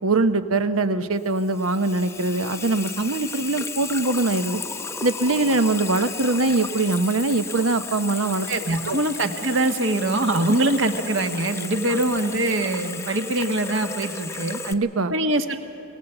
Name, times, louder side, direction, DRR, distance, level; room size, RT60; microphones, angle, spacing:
voice 1, 0.0-4.6 5.0-8.5 8.9-9.0 14.7-15.1, right 2 dB, 90° right, 10 dB, 0.9 m, -22 dB
Water tap faucet / Sink (filling or washing), 1.1-14.7, left 4 dB, 15° left, 0.7 m, -34 dB
voice 2, 8.5-14.6 15.1-15.6, right 2 dB, 65° right, 6 dB, 1.3 m, -23 dB
22.0 x 17.5 x 8.0 m, 2.8 s
head